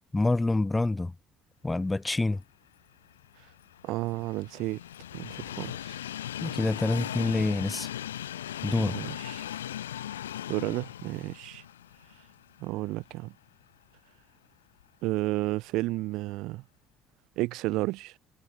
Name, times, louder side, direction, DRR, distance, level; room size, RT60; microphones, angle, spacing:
voice 1, 0.1-1.1 1.6-2.4 6.4-7.9 8.6-9.0, left 2 dB, 15° left, 0.5 m, -27 dB
Train, 3.0-13.2 13.6-13.7 14.8-14.9, left 11 dB, 75° left, 0.5 m, -38 dB
voice 2, 3.8-4.8 5.1-6.0 8.8-9.5 10.5-11.6 12.6-13.3 15.0-16.6 17.4-18.2, right 19 dB, 60° right, 0.4 m, -32 dB
figure-of-eight pair, 50°, 0 cm